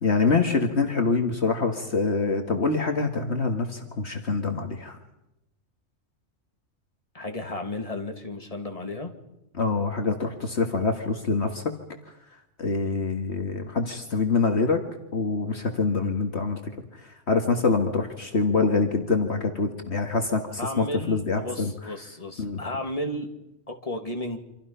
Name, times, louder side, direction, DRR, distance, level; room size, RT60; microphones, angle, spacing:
voice 1, 0.0-5.0 9.5-11.6 12.6-14.8 15.1-16.6 17.3-21.7 22.4-22.6, left 4 dB, 55° left, 4 dB, 2.0 m, -25 dB
voice 2, 7.1-9.1 20.6-23.3 23.7-24.4, left 1 dB, 30° left, 4 dB, 2.4 m, -33 dB
28.5 x 26.0 x 5.6 m, 0.89 s
omnidirectional pair, 1.3 m